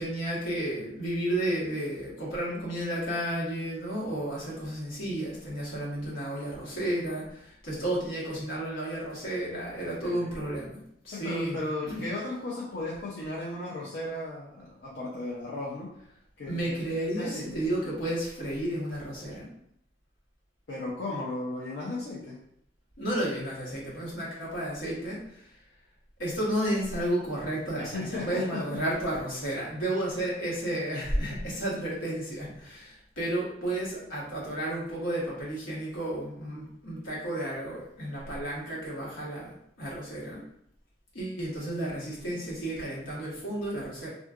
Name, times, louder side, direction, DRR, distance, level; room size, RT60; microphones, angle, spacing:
voice 1, 0.0-10.8 11.0-12.0 16.5-19.5 23.0-25.6 26.2-40.4 41.1-44.1, right 1 dB, 80° left, -6 dB, 1.3 m, -32 dB
voice 2, 9.8-10.2 11.1-15.9 16.4-16.7 17.2-17.5 20.7-22.4 27.8-28.8, left 2 dB, 60° left, -6 dB, 0.6 m, -35 dB
3.6 x 2.4 x 2.4 m, 0.72 s
head